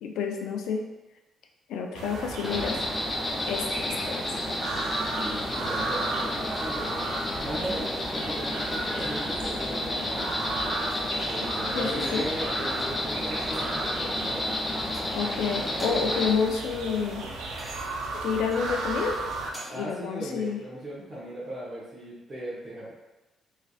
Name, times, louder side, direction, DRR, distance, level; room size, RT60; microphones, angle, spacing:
voice 1, 0.0-0.8 1.7-2.8 3.5-4.3 11.7-12.2 15.1-17.2 18.1-19.1 19.7-20.6, left 6 dB, 85° left, 3 dB, 0.3 m, -29 dB
sound 1, 1.9-19.5, right 3 dB, 85° right, 0.4 m, -35 dB
Insect, 2.4-16.3, left 1 dB, 20° left, 0.5 m, -31 dB
voice 2, 5.2-7.1 7.4-10.5 11.2-14.5 15.7-16.0 19.7-22.9, right 1 dB, 45° right, -11 dB, 0.9 m, -38 dB
sound 2, 11.9-12.4 12.8-13.0 13.4-13.8 14.2-14.4 14.9-15.4 15.7-16.2 16.6-19.9 20.4-20.6, right 1 dB, 15° right, 0.7 m, -47 dB
3.1 x 2.5 x 2.3 m, 1.1 s
cardioid pair, 90°, 0 cm